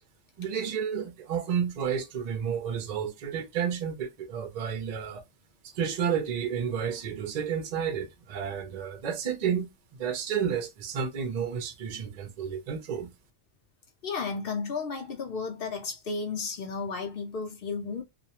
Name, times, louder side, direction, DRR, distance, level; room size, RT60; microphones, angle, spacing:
voice 1, 0.4-5.2 5.6-13.1, right 7 dB, 50° right, 0.5 m, -31 dB
voice 2, 14.0-18.0, left 4 dB, 60° left, 0.9 m, -33 dB
2.5 x 2.1 x 2.7 m
omnidirectional pair, 1.1 m